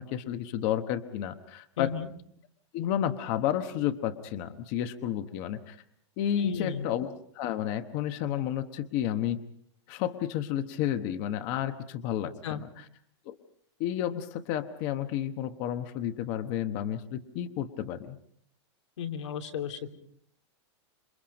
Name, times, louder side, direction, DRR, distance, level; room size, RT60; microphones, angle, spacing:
voice 1, 0.0-1.9 2.7-5.8 6.2-7.1 7.3-9.4 9.9-12.8 13.3-13.4 13.8-18.2, left 10 dB, 30° left, 9 dB, 1.0 m, -31 dB
voice 2, 1.8-2.1 6.4-6.9 12.4-12.6 19.0-19.9, left 8 dB, 85° left, 4 dB, 3.0 m, -34 dB
28.0 x 24.5 x 5.2 m, 0.64 s
supercardioid pair, 175°, 15 cm